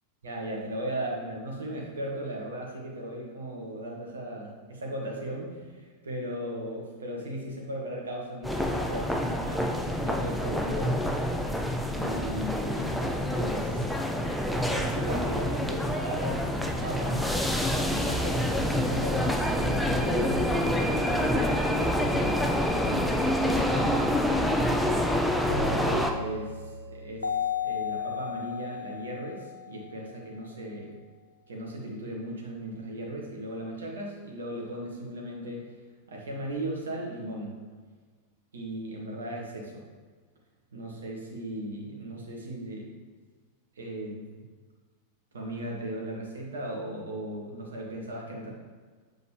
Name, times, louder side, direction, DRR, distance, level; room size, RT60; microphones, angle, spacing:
voice 1, 0.2-11.0 11.9-13.8 14.7-17.3 17.6-24.7 25.6-27.3 27.6-30.9 31.5-35.6 36.1-37.6 38.5-39.9 40.7-42.9 43.7-44.3 45.3-48.5, right 1 dB, 70° right, -1 dB, 1.3 m, -37 dB
sound 1, 8.4-26.1, left 1 dB, ahead, 0.5 m, -27 dB
sound 2, 25.5-30.1, left 5 dB, 85° left, 0.3 m, -34 dB
7.0 x 4.3 x 3.3 m, 1.5 s
figure-of-eight pair, 90°, 0 cm